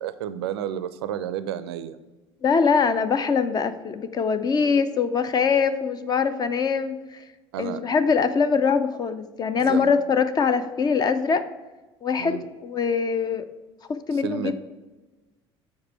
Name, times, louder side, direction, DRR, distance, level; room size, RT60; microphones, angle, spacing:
voice 1, 0.0-2.0 7.5-7.8 9.6-9.9 12.2-12.4 14.1-14.5, right 10 dB, 65° right, 14 dB, 0.4 m, -31 dB
voice 2, 2.4-7.2 7.6-11.4 12.0-13.5 14.1-14.5, left 5 dB, 30° left, 11 dB, 0.5 m, -23 dB
7.3 x 4.6 x 4.6 m, 1.2 s
figure-of-eight pair, 65°, 14 cm